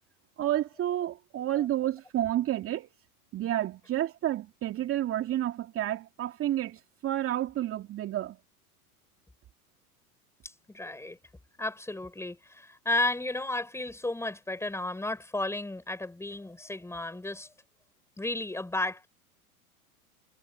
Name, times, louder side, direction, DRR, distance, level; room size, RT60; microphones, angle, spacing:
voice 1, 0.4-2.9 3.3-8.4, right 13 dB, 30° right, 2.6 m, -30 dB
voice 2, 10.4-11.2 11.6-17.5 18.2-19.1, left 2 dB, 5° left, 7.3 m, -33 dB
hypercardioid pair, 95°, 44 cm